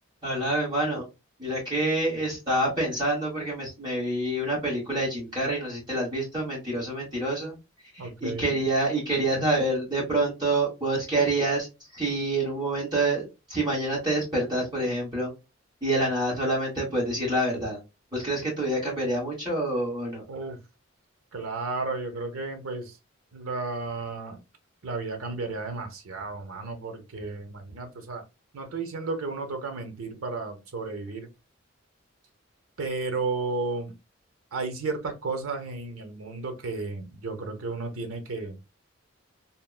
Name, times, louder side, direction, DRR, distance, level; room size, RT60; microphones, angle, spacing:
voice 1, 0.2-1.0 1.4-7.6 7.9-11.7 11.9-15.3 15.8-17.8 18.1-20.2, right 1 dB, 20° right, -5 dB, 1.2 m, -27 dB
voice 2, 8.0-8.6 20.3-20.6 21.3-23.0 23.3-24.4 24.8-28.2 28.5-31.3 32.8-33.9 34.5-38.6, right 3 dB, 80° right, 6 dB, 0.7 m, -33 dB
3.6 x 2.1 x 2.2 m, 0.25 s
head